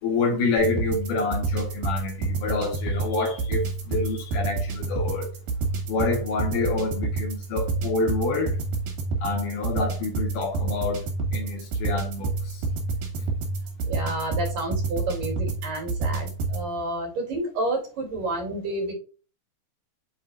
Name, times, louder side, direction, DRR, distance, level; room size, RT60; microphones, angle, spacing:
voice 1, 0.0-5.3 5.9-8.6 9.2-11.0 11.3-12.6, left 3 dB, 70° left, 3.1 m, -27 dB
sound 1, 0.6-16.6, right 3 dB, 80° right, 4.0 m, -29 dB
voice 2, 13.9-18.9, right 1 dB, 65° right, 4.5 m, -30 dB
9.2 x 4.4 x 2.5 m
omnidirectional pair, 4.0 m